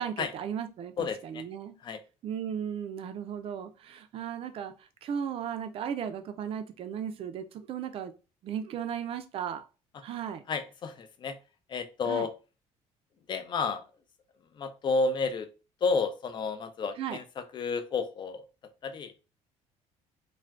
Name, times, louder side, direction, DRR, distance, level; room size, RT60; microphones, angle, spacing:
voice 1, 0.0-1.7 2.2-4.7 5.0-8.1 8.4-9.6 10.0-10.4 12.1-12.3 17.0-17.2, right 8 dB, 50° right, 9 dB, 0.4 m, -36 dB
voice 2, 1.0-1.4 1.8-2.0 10.5-11.4 11.7-12.3 13.3-13.8 14.5-15.5 15.8-18.5 18.8-19.2, left 4 dB, 35° left, 9 dB, 0.5 m, -31 dB
2.4 x 2.2 x 3.3 m, 0.32 s
cardioid pair, 125°, 13 cm